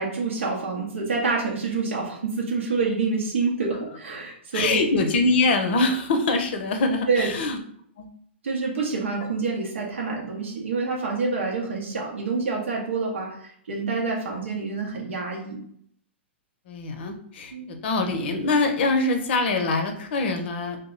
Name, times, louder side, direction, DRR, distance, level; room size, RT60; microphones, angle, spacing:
voice 1, 0.0-4.8 7.1-7.3 8.4-15.6 17.5-17.7, right 4 dB, 85° right, -2 dB, 0.7 m, -27 dB
voice 2, 4.5-7.6 8.0-8.1 16.7-20.8, left 3 dB, 60° left, 5 dB, 0.6 m, -24 dB
2.2 x 2.0 x 3.7 m, 0.65 s
hypercardioid pair, 130°, 7 cm